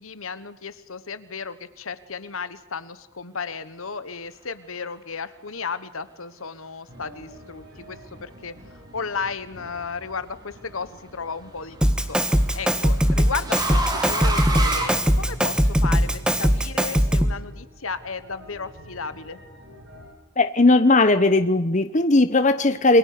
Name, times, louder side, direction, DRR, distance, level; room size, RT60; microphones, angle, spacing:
voice 1, 0.0-8.5 8.9-12.2 12.5-19.4, left 5 dB, 75° left, 14 dB, 1.3 m, -34 dB
sound 1, 6.9-20.1, equal, 55° right, 7.3 m, -46 dB
sound 2, 9.8-10.3 11.7-15.7, right 2 dB, 20° right, 3.0 m, -30 dB
Drum kit, 11.8-17.4, equal, 5° right, 1.4 m, -21 dB
voice 2, 20.4-23.0, left 2 dB, 35° left, 11 dB, 1.0 m, -18 dB
28.0 x 23.5 x 6.8 m, 0.85 s
head